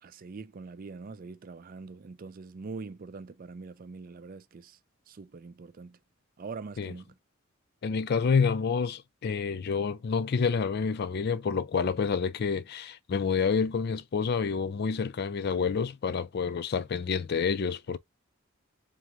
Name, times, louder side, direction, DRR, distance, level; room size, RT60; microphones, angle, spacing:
voice 1, 0.0-4.8 5.1-6.0 6.4-7.1, right 4 dB, 40° right, 0.4 m, -43 dB
voice 2, 7.8-18.0, left 5 dB, 50° left, 0.4 m, -28 dB
3.7 x 3.0 x 3.5 m
head